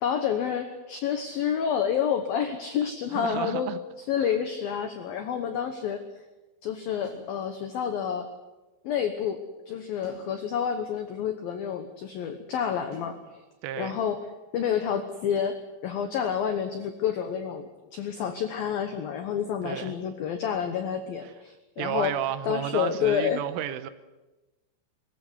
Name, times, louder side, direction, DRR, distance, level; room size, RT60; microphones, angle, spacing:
voice 1, 0.0-3.7 4.1-6.0 6.6-8.3 8.8-9.4 9.7-13.2 13.8-14.2 14.5-22.2 22.4-23.4, left 8 dB, 85° left, 7 dB, 2.1 m, -29 dB
voice 2, 3.1-3.8 13.6-14.0 19.6-19.9 21.2-21.3 21.8-23.9, right 11 dB, 80° right, 12 dB, 3.3 m, -32 dB
sound 1, 7.0-7.3 10.0-10.3 12.9-13.2, left 1 dB, 35° right, 6.0 m, -47 dB
22.5 x 15.0 x 9.7 m, 1.1 s
omnidirectional pair, 6.0 m